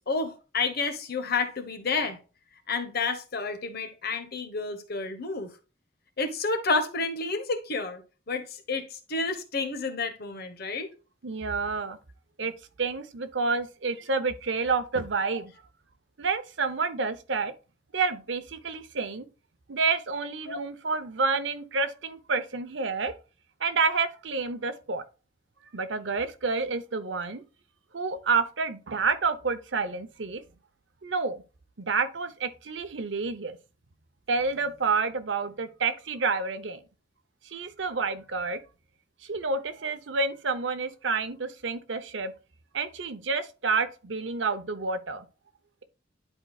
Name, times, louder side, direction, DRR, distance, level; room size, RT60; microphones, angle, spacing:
voice 1, 0.1-2.2 2.7-5.5 6.2-8.0 8.3-10.9 20.5-20.6, left 4 dB, 55° left, 1.2 m, -30 dB
voice 2, 11.2-12.0 12.4-12.5 12.8-15.5 16.2-17.5 17.9-19.3 19.7-23.1 23.6-25.0 25.7-27.4 27.9-30.4 31.0-31.4 31.8-33.6 34.3-36.8 37.5-38.6 39.2-42.3 42.7-45.3, right 4 dB, 75° right, 0.8 m, -29 dB
11.0 x 4.4 x 2.3 m
head